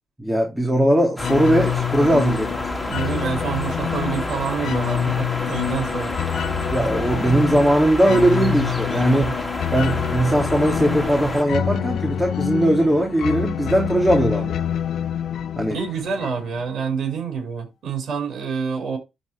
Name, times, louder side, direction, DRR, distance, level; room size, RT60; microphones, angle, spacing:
voice 1, 0.2-2.6 6.7-9.4 9.7-14.6 15.6-15.8, right 1 dB, 10° right, 3.0 m, -19 dB
sound 1, 1.2-16.7, left 9 dB, 60° left, 0.7 m, -27 dB
sound 2, 1.2-11.4, left 1 dB, 15° left, 3.0 m, -29 dB
voice 2, 2.8-6.1 8.9-9.1 15.7-19.0, right 6 dB, 60° right, 6.3 m, -27 dB
12.5 x 4.8 x 3.4 m
figure-of-eight pair, 40°, 0 cm